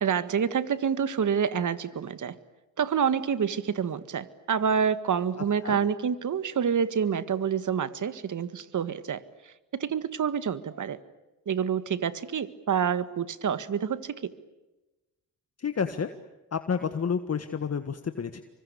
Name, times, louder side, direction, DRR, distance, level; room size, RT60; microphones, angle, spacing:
voice 1, 0.0-2.4 2.8-9.2 9.7-11.0 11.5-14.3, right 7 dB, 50° right, 13 dB, 1.8 m, -27 dB
voice 2, 15.6-16.1 16.5-18.4, left 6 dB, 40° left, 9 dB, 1.7 m, -30 dB
28.5 x 25.0 x 8.4 m, 1.1 s
cardioid pair, 70°, 38 cm